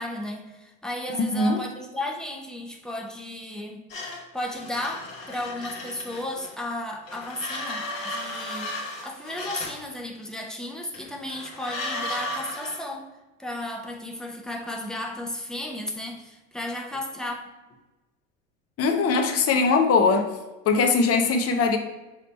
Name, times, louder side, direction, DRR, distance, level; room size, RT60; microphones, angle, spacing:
voice 1, 0.0-3.8 4.3-13.1 13.4-17.5, left 1 dB, ahead, 1 dB, 0.9 m, -34 dB
voice 2, 1.2-1.6 18.8-20.3 20.7-21.8, left 4 dB, 35° left, 4 dB, 1.0 m, -21 dB
sound 1, 3.9-6.6 7.1-9.8 10.9-12.8, left 1 dB, 75° left, 1.4 m, -35 dB
7.2 x 3.2 x 4.2 m, 1.1 s
figure-of-eight pair, 70°, 39 cm